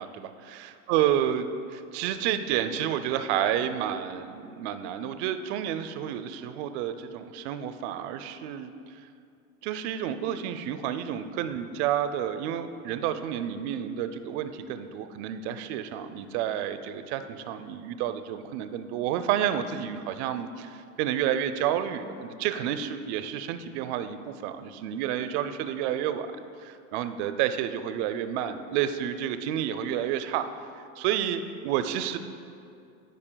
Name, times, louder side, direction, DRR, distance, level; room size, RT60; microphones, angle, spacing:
voice 1, 0.0-8.9 9.6-26.3 26.6-30.5 31.0-32.2, right 10 dB, 50° right, 10 dB, 0.5 m, -30 dB
14.0 x 5.3 x 2.2 m, 2.4 s
supercardioid pair, 115°, 43 cm